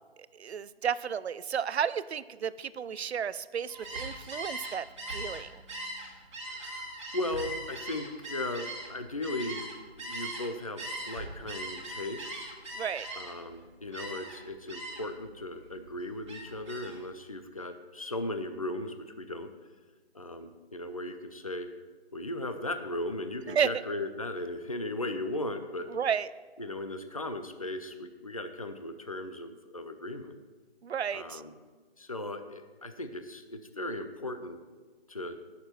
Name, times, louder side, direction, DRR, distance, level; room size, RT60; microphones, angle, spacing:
voice 1, 0.4-5.6 12.8-13.1 23.5-23.7 25.9-26.3 30.8-31.4, right 7 dB, 80° right, 17 dB, 0.6 m, -32 dB
Gull seagull, 3.7-10.5 10.8-13.5 13.9-14.4 14.7-15.2 15.5-17.0, right 1 dB, 30° right, 1.8 m, -40 dB
voice 2, 6.5-6.9 7.1-9.6 10.0-12.6 13.2-19.5 20.1-21.7 22.1-25.9 26.6-30.4 31.1-31.5 32.0-34.6 35.1-35.4, left 1 dB, 35° left, 8 dB, 0.5 m, -37 dB
17.5 x 6.8 x 4.3 m, 1.4 s
hypercardioid pair, 180°, 32 cm